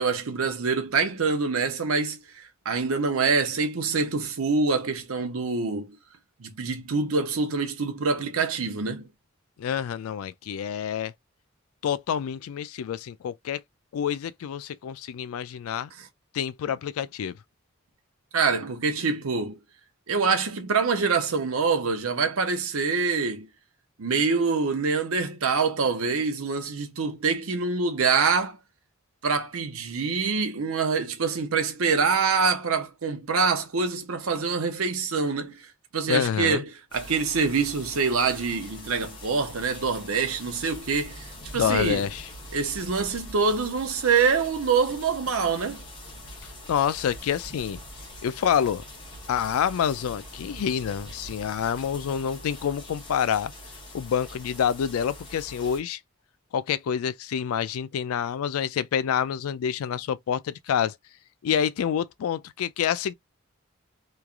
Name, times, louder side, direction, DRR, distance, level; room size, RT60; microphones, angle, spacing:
voice 1, 0.0-5.9 6.4-9.1 18.3-19.6 20.1-23.5 24.0-28.6 29.2-35.6 35.9-36.7 36.9-41.3 41.5-42.0 42.5-45.8, right 5 dB, 75° right, 0.7 m, -25 dB
voice 2, 9.6-11.1 11.8-13.6 13.9-15.9 16.3-17.3 36.1-36.6 41.5-42.3 46.7-47.8 48.2-48.8 49.3-53.5 53.9-56.0 56.5-61.0 61.4-63.1, left 8 dB, 80° left, 0.3 m, -27 dB
sound 1, 36.9-55.8, left 1 dB, 20° left, 1.1 m, -43 dB
3.1 x 2.3 x 2.4 m
head